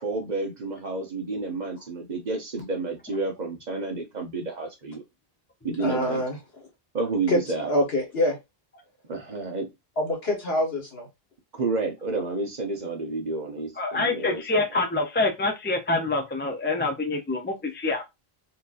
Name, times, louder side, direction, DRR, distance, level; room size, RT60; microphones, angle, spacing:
voice 1, 0.0-5.0 5.6-6.2 6.9-7.7 9.1-9.7 11.5-14.6, right 3 dB, 45° right, 0.9 m, -30 dB
voice 2, 5.8-6.4 7.3-7.4 7.7-8.4 10.0-11.1, left 1 dB, 70° left, 1.6 m, -25 dB
voice 3, 13.8-18.0, left 2 dB, 15° left, 0.4 m, -26 dB
4.3 x 2.7 x 2.5 m
omnidirectional pair, 1.1 m